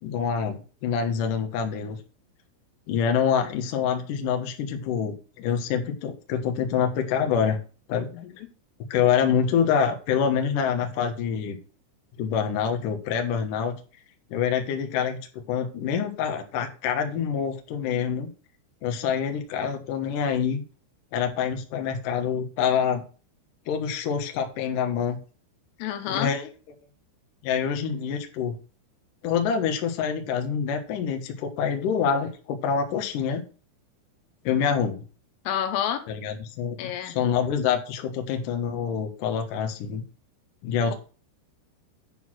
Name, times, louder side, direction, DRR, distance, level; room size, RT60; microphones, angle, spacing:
voice 1, 0.0-2.0 2.9-7.6 7.9-8.1 8.9-11.6 12.2-13.8 14.3-18.3 18.8-20.6 21.1-23.0 23.7-25.2 26.1-26.5 27.4-28.6 29.2-33.4 34.4-35.0 36.1-40.0 40.6-40.9, left 7 dB, 70° left, 2.0 m, -26 dB
voice 2, 25.8-26.3 35.5-36.0 36.8-37.2 40.9-41.0, left 10 dB, 85° left, 3.7 m, -29 dB
9.4 x 4.1 x 6.3 m
omnidirectional pair, 5.7 m